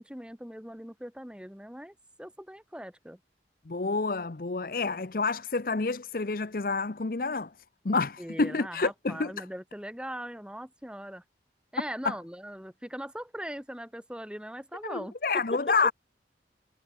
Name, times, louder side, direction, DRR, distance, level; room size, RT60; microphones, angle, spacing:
voice 1, 0.0-3.2 8.2-11.2 11.7-15.9, equal, 5° right, 2.7 m, -40 dB
voice 2, 3.7-7.5 7.8-9.4 12.0-12.1 14.8-15.9, left 4 dB, 50° left, 0.7 m, -28 dB
head